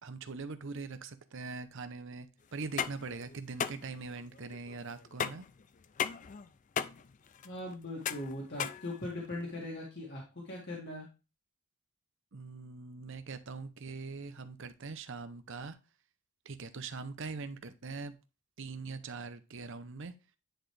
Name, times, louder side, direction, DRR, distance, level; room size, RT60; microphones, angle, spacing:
voice 1, 0.0-5.5 12.3-15.8 16.4-18.2 18.6-20.1, right 4 dB, 55° right, 0.7 m, -42 dB
sound 1, 2.5-9.5, left 7 dB, 35° left, 0.3 m, -38 dB
voice 2, 7.4-11.1, left 1 dB, 50° left, 1.9 m, -40 dB
10.0 x 4.2 x 3.3 m
head